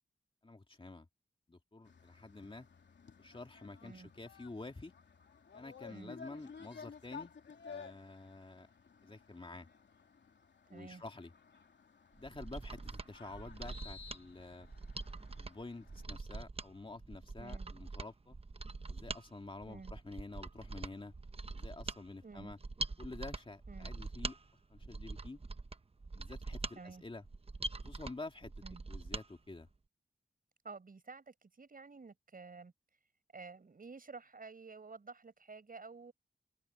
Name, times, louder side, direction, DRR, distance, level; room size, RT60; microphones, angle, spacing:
voice 1, 0.4-1.1 1.5-2.7 3.2-4.9 5.5-7.3 7.6-8.7 9.0-9.7 10.7-11.3 12.1-14.7 15.4-18.4 18.9-21.1 21.5-22.6 23.0-24.4 24.7-25.4 26.1-27.2 27.8-28.5 28.9-29.7, left 2 dB, 30° left, 2.3 m, -49 dB
sound 1, 1.8-16.0, left 5 dB, 75° left, 3.2 m, -55 dB
voice 2, 10.7-11.0 17.4-17.7 19.7-19.9 22.2-22.5 23.7-23.9 26.8-27.0 28.6-28.8 30.6-32.7 33.3-36.1, right 4 dB, 50° right, 6.2 m, -51 dB
Mechanisms, 12.2-29.3 29.6-29.7, right 3 dB, 35° right, 1.0 m, -44 dB
open air
wide cardioid pair, 90°, 18 cm